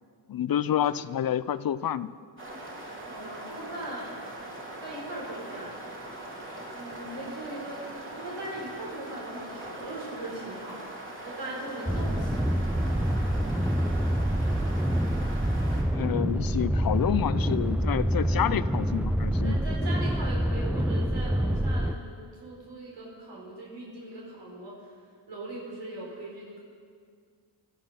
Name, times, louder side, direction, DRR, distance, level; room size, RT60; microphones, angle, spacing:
voice 1, 0.3-2.2 15.9-19.6, left 10 dB, 50° left, 16 dB, 0.6 m, -28 dB
sound 1, 2.4-15.8, right 1 dB, 25° right, 3.5 m, -41 dB
voice 2, 3.0-4.1 4.8-5.8 6.7-7.8 8.1-12.6 18.3-18.7 19.4-24.9 25.3-26.6, right 1 dB, 70° right, -4 dB, 4.7 m, -40 dB
sound 2, 11.9-21.9, equal, 5° right, 0.5 m, -26 dB
19.0 x 13.0 x 5.8 m, 2.1 s
cardioid pair, 85°, 44 cm